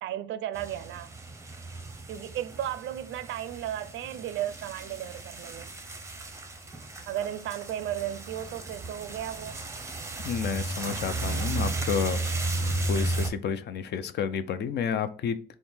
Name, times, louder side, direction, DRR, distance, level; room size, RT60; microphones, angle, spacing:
voice 1, 0.0-1.1 2.1-5.7 7.1-9.6, right 11 dB, 70° right, 0.4 m, -34 dB
sound 1, 0.6-13.3, right 2 dB, 15° right, 0.6 m, -34 dB
voice 2, 10.2-12.2 12.9-15.6, left 7 dB, 60° left, 0.4 m, -30 dB
3.5 x 2.1 x 4.3 m
cardioid pair, 90°, 20 cm